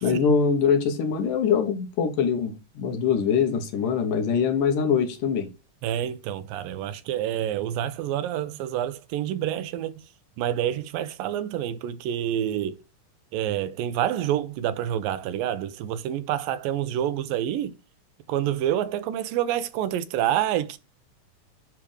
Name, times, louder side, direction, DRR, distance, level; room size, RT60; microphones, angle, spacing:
voice 1, 0.0-5.5, left 6 dB, 70° left, 2.8 m, -23 dB
voice 2, 5.8-10.0 10.4-12.8 13.3-17.7 18.3-20.8, right 11 dB, 85° right, 2.4 m, -28 dB
10.0 x 3.6 x 4.9 m
omnidirectional pair, 4.1 m